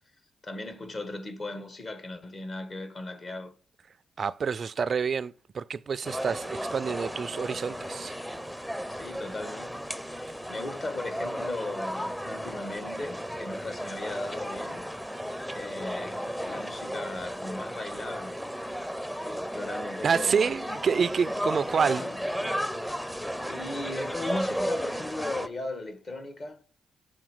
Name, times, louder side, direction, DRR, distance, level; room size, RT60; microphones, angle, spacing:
voice 1, 0.4-3.6 8.9-9.8 10.1-14.8 15.5-18.4 19.1-20.6 21.8-22.2 23.4-26.6, left 2 dB, 50° left, 1.4 m, -37 dB
voice 2, 4.2-8.2 20.0-22.1, right 6 dB, 55° right, 0.3 m, -28 dB
sound 1, 6.0-25.5, equal, 5° left, 0.6 m, -34 dB
7.1 x 3.6 x 4.9 m
cardioid pair, 60°, 0 cm